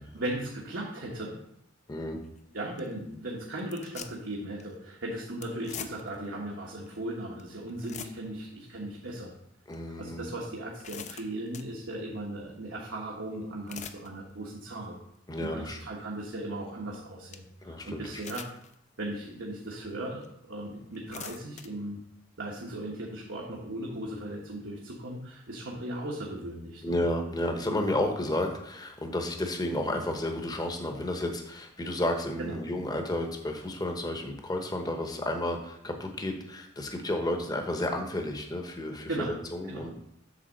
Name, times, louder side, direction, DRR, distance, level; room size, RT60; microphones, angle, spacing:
voice 1, 0.0-1.4 2.5-9.3 10.0-15.0 15.4-18.5 19.0-22.0 22.4-26.9 32.4-32.6 39.1-39.4 39.7-39.9, right 1 dB, 85° right, -3 dB, 1.3 m, -37 dB
voice 2, 1.9-2.2 9.7-10.2 15.3-15.8 17.6-18.1 26.8-39.9, left 1 dB, 20° left, 3 dB, 0.9 m, -32 dB
sound 1, 2.2-2.4 2.8-2.9 3.6-4.3 4.6-4.7 5.4-6.3 6.9-7.0 7.4-7.5 7.7-8.5 9.0-9.1 9.7-9.8 10.4-11.7 13.4-14.1 14.5-14.9 15.4-15.5 16.9-17.0 17.3-17.4 18.1-18.8 19.3-19.4 20.2-20.3 20.9-21.7, left 8 dB, 40° left, 0.5 m, -43 dB
8.2 x 3.6 x 6.5 m, 0.77 s
head